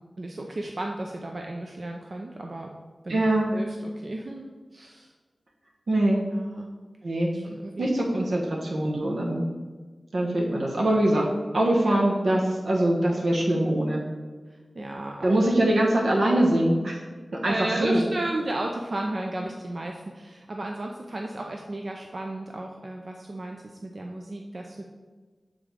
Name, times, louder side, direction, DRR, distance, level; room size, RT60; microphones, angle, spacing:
voice 1, 0.2-2.7 3.0-3.2 3.5-5.1 6.3-6.7 7.3-7.9 11.9-12.1 14.5-15.3 17.4-24.8, right 1 dB, 55° right, 1 dB, 0.6 m, -34 dB
voice 2, 3.1-3.6 5.9-6.2 7.0-7.3 7.8-9.5 10.1-11.3 11.5-14.0 15.2-17.0 17.4-18.0, right 1 dB, 85° right, -1 dB, 1.3 m, -23 dB
8.6 x 3.7 x 4.9 m, 1.4 s
wide cardioid pair, 70°, 0 cm